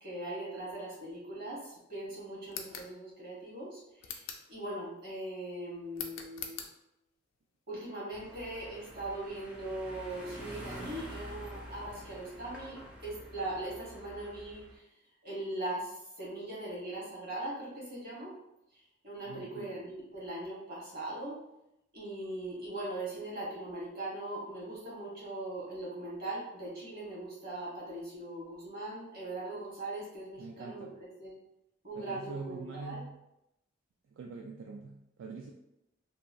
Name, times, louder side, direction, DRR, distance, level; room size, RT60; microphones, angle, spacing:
voice 1, 0.0-6.6 7.7-14.8 15.2-18.3 19.0-21.4 21.9-31.4 31.8-33.0, right 1 dB, 50° right, -5 dB, 1.1 m, -40 dB
sound 1, 2.5-2.9 4.0-4.5 5.9-6.7, left 7 dB, 75° left, 0.4 m, -42 dB
sound 2, 8.1-14.8, equal, 5° right, 0.4 m, -47 dB
voice 2, 19.3-19.7 30.4-31.0 31.9-33.2 34.1-35.5, right 4 dB, 75° right, 0 dB, 0.3 m, -44 dB
2.9 x 2.2 x 2.6 m, 0.85 s
head